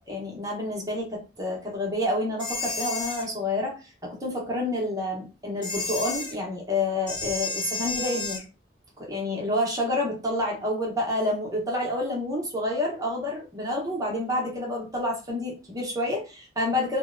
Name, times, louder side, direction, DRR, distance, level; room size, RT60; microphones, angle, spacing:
voice 1, 0.0-8.4 9.0-17.0, left 1 dB, 20° right, -2 dB, 0.7 m, -29 dB
sound 1, 2.4-3.3 5.6-6.3 7.1-8.4, left 3 dB, 25° left, 0.4 m, -31 dB
2.7 x 2.0 x 2.4 m, 0.31 s
head